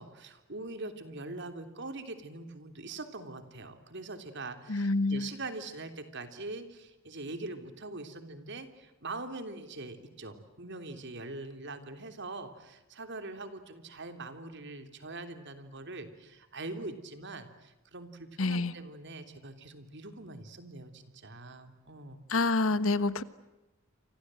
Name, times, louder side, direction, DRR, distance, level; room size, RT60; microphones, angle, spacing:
voice 1, 0.0-22.2, right 2 dB, 55° right, 8 dB, 3.3 m, -43 dB
voice 2, 4.7-5.3 18.4-18.7 22.3-23.2, left 3 dB, 70° left, 15 dB, 1.3 m, -27 dB
29.5 x 25.5 x 7.8 m, 1.0 s
head